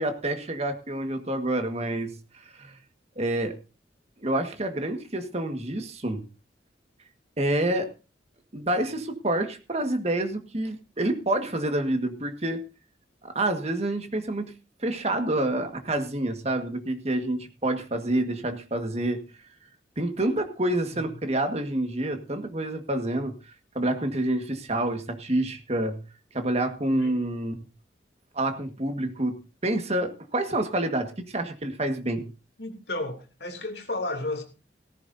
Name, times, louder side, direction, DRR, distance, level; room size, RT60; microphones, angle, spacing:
voice 1, 0.0-2.1 2.5-2.8 3.2-3.5 4.2-6.2 7.4-7.9 8.5-12.6 13.2-14.5 14.8-19.2 20.0-23.3 23.7-26.0 26.3-27.5 28.3-32.2, right 1 dB, 35° right, 7 dB, 1.7 m, -28 dB
voice 2, 32.6-34.4, left 2 dB, 70° left, 4 dB, 2.8 m, -32 dB
17.5 x 14.5 x 2.7 m, 0.31 s
head